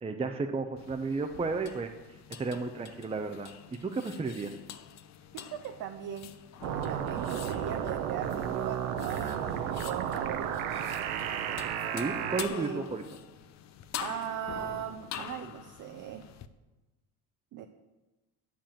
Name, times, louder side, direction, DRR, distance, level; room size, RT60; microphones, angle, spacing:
voice 1, 0.0-1.9 2.4-3.5 3.8-4.6 11.9-13.0, right 4 dB, 15° right, 5 dB, 0.7 m, -33 dB
sound 1, 0.8-16.5, left 10 dB, 45° left, 0.7 m, -46 dB
voice 2, 5.3-6.3 6.7-10.6 12.5-12.9 14.0-16.3 17.5-17.7, right 10 dB, 55° right, 5 dB, 0.8 m, -39 dB
sound 2, 6.6-12.5, right 9 dB, 80° right, 1.0 m, -33 dB
7.7 x 6.9 x 7.4 m, 1.1 s
supercardioid pair, 95°, 37 cm